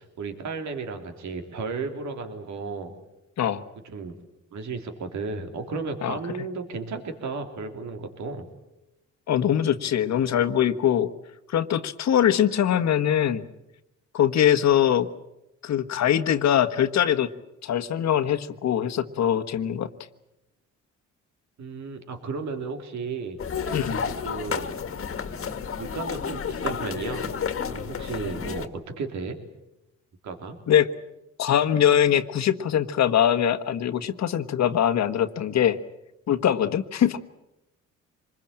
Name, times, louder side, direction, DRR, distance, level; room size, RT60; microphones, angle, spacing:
voice 1, 0.0-2.9 3.8-4.2 4.5-8.5 21.6-23.4 24.2-24.7 25.7-27.3 27.6-29.4 30.2-30.6, right 4 dB, 70° right, 5 dB, 3.4 m, -34 dB
voice 2, 9.3-11.1 11.5-13.5 14.1-15.1 15.6-17.3 17.6-19.9 23.7-24.0 30.7-30.9 31.4-35.8 36.3-37.2, left 10 dB, 60° left, 10 dB, 1.4 m, -22 dB
sound 1, 23.4-28.7, left 6 dB, 45° left, 1.8 m, -31 dB
25.5 x 21.5 x 8.9 m, 0.92 s
cardioid pair, 90°, 30 cm